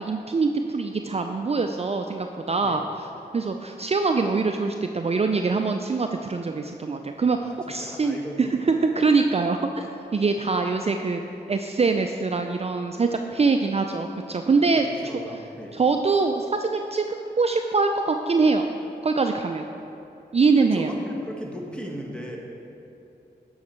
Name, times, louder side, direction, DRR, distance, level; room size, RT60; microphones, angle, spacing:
voice 1, 0.0-2.8 3.3-9.9 10.1-11.2 11.5-14.9 15.7-17.0 17.4-18.7 19.0-19.7 20.3-20.9, right 4 dB, 35° right, 5 dB, 0.4 m, -23 dB
voice 2, 7.3-8.9 10.4-10.5 14.7-15.8 20.6-22.4, equal, 5° left, -1 dB, 1.6 m, -38 dB
9.6 x 6.3 x 4.4 m, 2.9 s
cardioid pair, 40°, 17 cm